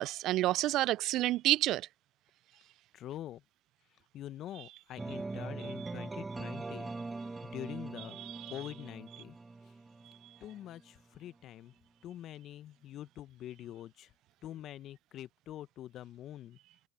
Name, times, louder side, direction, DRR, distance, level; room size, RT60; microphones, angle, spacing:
voice 1, 0.0-1.8 8.2-8.4, right 15 dB, 65° right, 0.3 m, -29 dB
voice 2, 2.9-3.4 4.1-6.9 7.4-8.2 8.5-9.4 10.4-11.7 12.0-14.1 14.4-16.6, left 12 dB, 65° left, 1.1 m, -45 dB
sound 1, 5.0-10.9, right 3 dB, 25° right, 1.2 m, -42 dB
hypercardioid pair, 55°, 0 cm